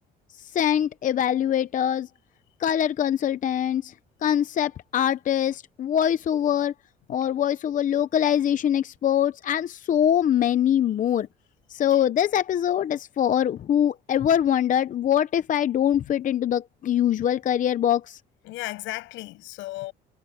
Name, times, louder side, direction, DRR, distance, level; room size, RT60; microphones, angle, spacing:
voice 1, 0.5-2.1 2.6-3.9 4.2-6.7 7.1-11.3 11.7-18.2, left 10 dB, 45° left, 0.7 m, -23 dB
voice 2, 18.4-19.9, left 19 dB, 85° left, 7.5 m, -35 dB
cardioid pair, 115°, 19 cm